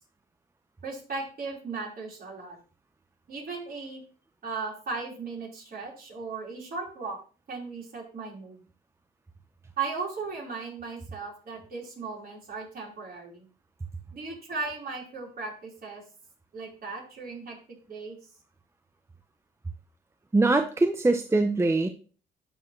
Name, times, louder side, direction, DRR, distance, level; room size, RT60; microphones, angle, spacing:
voice 1, 0.8-2.6 3.3-4.0 4.4-7.2 7.5-8.6 9.8-13.4 14.1-16.0 16.5-17.6 17.9-18.2, right 4 dB, 50° right, -3 dB, 4.3 m, -36 dB
voice 2, 20.3-21.9, right 2 dB, 15° right, 7 dB, 0.6 m, -23 dB
11.0 x 4.8 x 3.1 m, 0.39 s
cardioid pair, 90°, 20 cm